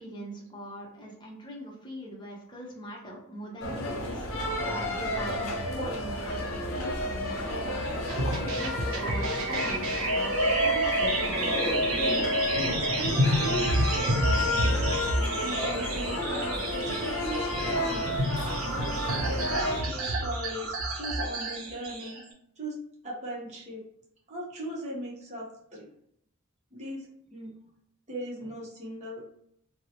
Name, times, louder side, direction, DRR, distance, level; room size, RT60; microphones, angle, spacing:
voice 1, 0.0-7.8 8.1-11.8, equal, 20° left, -3 dB, 0.7 m, -41 dB
sound 1, 3.6-19.8, equal, 70° left, 0.6 m, -31 dB
voice 2, 7.9-8.5 12.6-14.9 15.4-18.2 19.1-22.2 22.6-22.8 23.0-23.8 24.3-25.9 26.7-27.5 28.1-29.3, equal, 30° right, -4 dB, 0.7 m, -38 dB
sound 2, 8.1-22.2, right 1 dB, 75° right, 0.5 m, -29 dB
2.8 x 2.0 x 2.7 m, 0.71 s
head